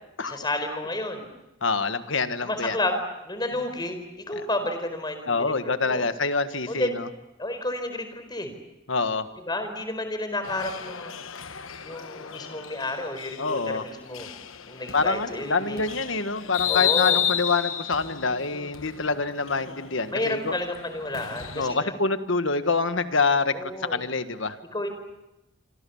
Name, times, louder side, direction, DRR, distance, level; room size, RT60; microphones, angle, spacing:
voice 1, 0.2-1.3 2.4-2.9 3.2-5.5 5.8-6.0 6.7-7.0 7.4-8.5 9.5-11.2 11.8-14.3 14.7-15.8 16.7-17.2 20.1-21.9 23.5-24.1 24.7-24.9, left 2 dB, 20° left, 8 dB, 4.5 m, -31 dB
voice 2, 1.6-2.8 4.4-4.5 5.3-7.1 8.9-9.3 13.4-13.8 14.9-20.5 21.5-24.6, left 4 dB, 70° left, 10 dB, 1.5 m, -26 dB
sound 1, 10.4-21.7, left 10 dB, 85° left, 1.2 m, -32 dB
27.0 x 26.0 x 7.1 m, 0.97 s
head